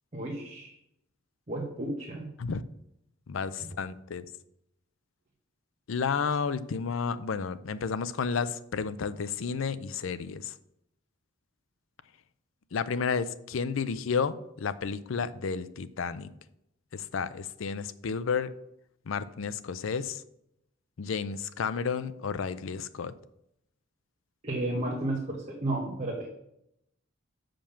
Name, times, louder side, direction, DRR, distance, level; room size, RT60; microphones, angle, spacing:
voice 1, 0.1-0.7 1.5-2.3 24.4-26.3, right 2 dB, 35° right, -3 dB, 1.2 m, -32 dB
voice 2, 3.3-4.3 5.9-10.5 12.7-16.3 16.9-18.5 19.1-20.2 21.0-23.1, left 5 dB, 75° left, 14 dB, 0.5 m, -31 dB
7.2 x 5.2 x 5.7 m, 0.80 s
head